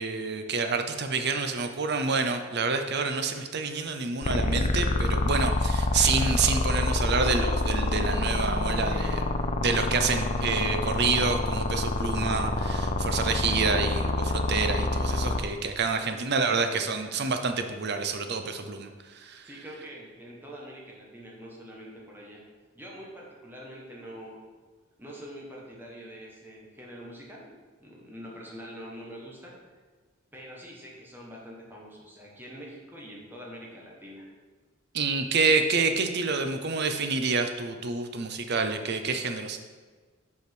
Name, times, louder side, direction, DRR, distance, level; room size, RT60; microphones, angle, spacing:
voice 1, 0.0-9.2 9.6-18.9 19.2-19.4 34.9-39.6, right 4 dB, 55° right, 7 dB, 0.7 m, -28 dB
sound 1, 4.2-15.4, left 2 dB, 30° left, 0.5 m, -27 dB
voice 2, 8.8-9.1 15.8-16.1 19.4-22.4 22.7-24.4 25.0-27.5 27.8-29.6 30.3-34.3, equal, 10° right, -3 dB, 1.5 m, -44 dB
5.5 x 5.1 x 6.0 m, 1.4 s
head